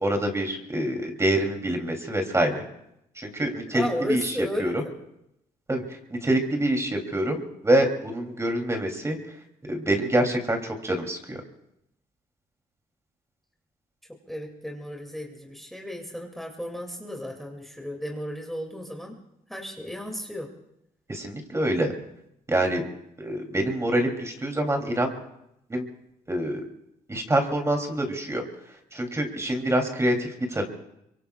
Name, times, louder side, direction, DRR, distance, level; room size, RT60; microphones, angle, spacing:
voice 1, 0.0-2.6 3.2-4.3 4.6-4.8 5.7-5.8 6.1-9.2 9.7-11.4 21.1-21.9 22.5-22.8 23.2-25.2 25.7-25.8 26.3-26.6 27.1-28.4 28.9-30.6, right 1 dB, 20° right, 3 dB, 2.9 m, -26 dB
voice 2, 3.7-4.9 14.3-19.1 19.5-20.5, left 1 dB, ahead, 1 dB, 2.4 m, -34 dB
24.0 x 23.5 x 2.4 m, 0.81 s
cardioid pair, 85°, 15 cm